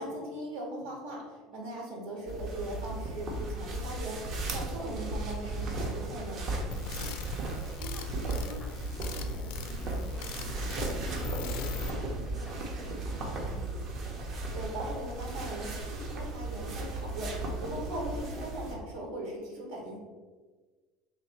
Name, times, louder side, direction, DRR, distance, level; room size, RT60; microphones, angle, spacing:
voice 1, 0.0-6.4 14.3-20.0, right 1 dB, 80° right, -2 dB, 1.1 m, -39 dB
voice 2, 1.5-1.9 7.8-13.9, equal, ahead, 0 dB, 0.6 m, -49 dB
sound 1, 2.3-18.8, right 2 dB, 40° right, 0.7 m, -36 dB
sound 2, 6.7-11.9, left 5 dB, 65° left, 0.4 m, -40 dB
3.2 x 2.7 x 4.1 m, 1.4 s
cardioid pair, 155°, 0 cm